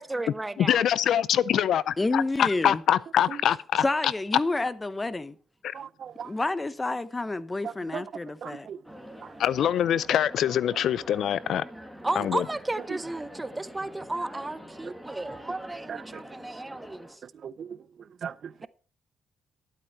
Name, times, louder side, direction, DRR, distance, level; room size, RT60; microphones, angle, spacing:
voice 1, 0.0-0.8 12.0-17.1, right 2 dB, 15° right, 0.7 m, -33 dB
voice 2, 0.6-3.8 5.6-5.7 9.4-11.6 12.2-12.4, left 10 dB, 70° left, 0.4 m, -24 dB
voice 3, 2.0-2.8 3.8-5.4 6.2-8.7, left 2 dB, 20° left, 0.8 m, -29 dB
voice 4, 5.7-6.3 7.6-8.0 8.4-8.8 15.9-16.2 17.4-17.8 18.2-18.7, right 8 dB, 55° right, 0.5 m, -38 dB
sound 1, 8.8-17.2, equal, ahead, 1.9 m, -45 dB
11.5 x 8.7 x 4.4 m
cardioid pair, 90°, 0 cm